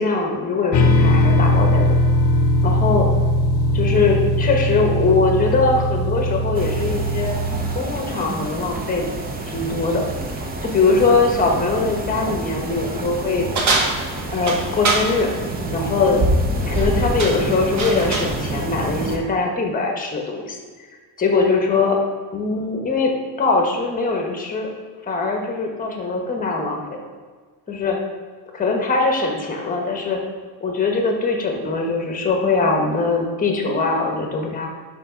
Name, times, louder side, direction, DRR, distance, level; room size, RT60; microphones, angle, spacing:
voice 1, 0.0-2.0 2.6-3.1 3.7-7.4 7.7-9.1 9.4-10.0 10.6-13.5 14.3-15.4 15.7-16.3 16.7-20.6 21.2-22.0 22.3-24.7 25.0-27.0 27.7-28.0 28.5-30.2 30.6-34.7, left 3 dB, 20° left, 2 dB, 1.0 m, -21 dB
sound 1, 0.7-7.8, left 1 dB, 60° left, 0.7 m, -19 dB
sound 2, 6.5-19.2, right 1 dB, 20° right, 0.6 m, -27 dB
sound 3, 13.5-15.1 16.6-16.9 17.2-18.3, right 3 dB, 40° right, 1.2 m, -23 dB
5.7 x 5.6 x 4.9 m, 1.5 s
cardioid pair, 155°, 45 cm